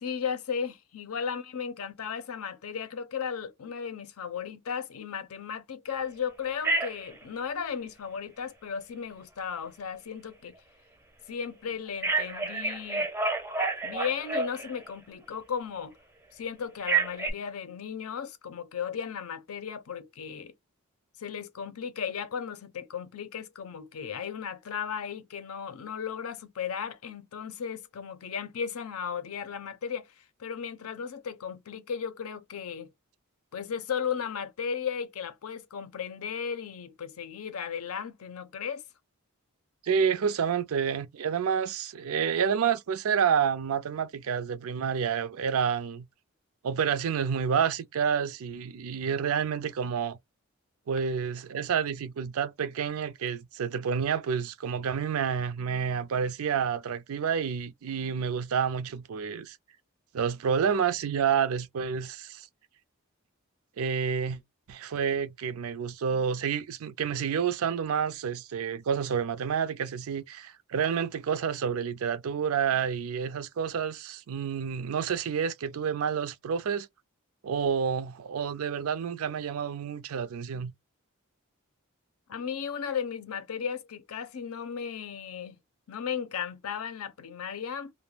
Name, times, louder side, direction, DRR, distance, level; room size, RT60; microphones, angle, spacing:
voice 1, 0.0-10.6 11.3-13.1 13.8-16.0 16.3-20.5 21.2-32.9 33.5-38.8 82.3-85.6 85.9-87.9, left 7 dB, 85° left, 0.6 m, -35 dB
Telephone, 6.6-7.2 12.0-14.9 16.8-17.3, right 4 dB, 10° right, 0.4 m, -29 dB
voice 2, 39.8-46.1 46.6-50.2 50.9-59.6 60.1-62.5 63.8-64.4 64.7-76.9 77.4-80.7, right 7 dB, 80° right, 0.4 m, -29 dB
2.3 x 2.1 x 3.2 m
head